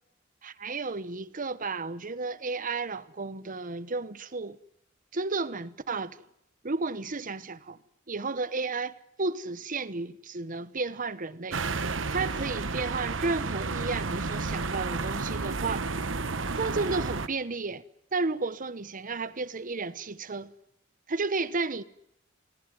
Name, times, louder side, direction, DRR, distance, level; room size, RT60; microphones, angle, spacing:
voice 1, 0.4-4.6 5.1-6.2 6.6-7.8 8.1-11.6 12.1-15.9 16.6-17.8 18.1-20.5 21.1-21.8, right 3 dB, 45° right, 1.1 m, -32 dB
sound 1, 11.5-17.3, right 3 dB, 70° right, 1.2 m, -31 dB
29.0 x 20.5 x 9.6 m
head